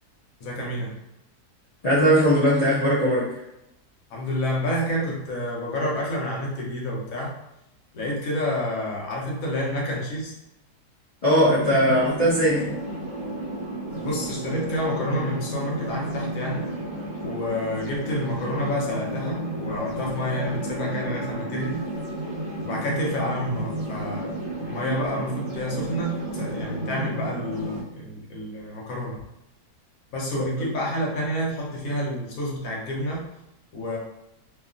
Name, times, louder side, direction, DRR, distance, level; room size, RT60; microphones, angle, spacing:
voice 1, 0.4-0.9 4.1-7.3 7.9-10.3 13.8-16.7 17.2-21.9 22.6-29.2 30.1-33.3 33.7-34.0, left 1 dB, 65° left, -3 dB, 1.1 m, -29 dB
voice 2, 1.8-3.3 11.2-12.7, equal, 50° left, -10 dB, 0.4 m, -19 dB
sound 1, 11.4-27.8, right 1 dB, 35° right, 0.6 m, -32 dB
2.8 x 2.3 x 2.4 m, 0.87 s
omnidirectional pair, 1.7 m